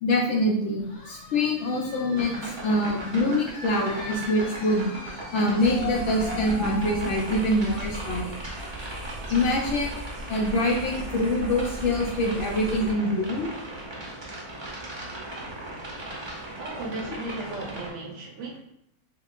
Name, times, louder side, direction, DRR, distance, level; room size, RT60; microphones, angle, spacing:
voice 1, 0.0-4.9 5.3-8.4 9.3-10.0 10.3-13.5, left 1 dB, 60° left, -2 dB, 0.8 m, -25 dB
sound 1, 0.8-10.3, left 2 dB, 85° left, 1.6 m, -40 dB
sound 2, 2.2-17.9, right 1 dB, 30° right, 0.5 m, -38 dB
sound 3, 5.6-12.9, equal, 90° right, 0.4 m, -38 dB
voice 2, 16.6-18.6, right 2 dB, 65° right, -2 dB, 0.8 m, -36 dB
3.5 x 3.1 x 2.4 m, 0.76 s
omnidirectional pair, 1.5 m